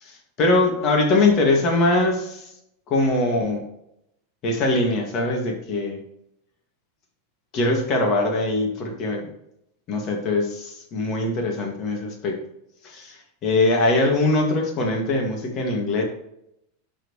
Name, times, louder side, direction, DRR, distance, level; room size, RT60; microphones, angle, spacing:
voice 1, 0.0-2.5 2.9-3.7 4.4-6.0 7.5-9.3 9.9-12.4 12.8-16.0, left 2 dB, 40° left, 2 dB, 2.3 m, -22 dB
12.0 x 4.5 x 3.3 m, 0.79 s
hypercardioid pair, 95°, 0 cm